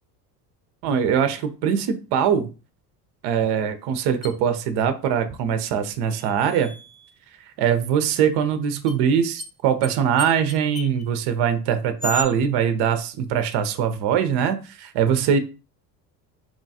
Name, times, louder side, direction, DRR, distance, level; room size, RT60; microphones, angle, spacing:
voice 1, 0.8-2.5 3.2-6.7 7.6-15.4, right 8 dB, 55° right, 10 dB, 0.6 m, -22 dB
sound 1, 4.2-4.3 6.1-7.1 8.9-9.0 9.4-9.5 9.8-9.9 10.2-11.0 12.0-12.2, left 1 dB, ahead, 0.8 m, -34 dB
3.0 x 2.3 x 2.7 m, 0.33 s
hypercardioid pair, 70°, 50 cm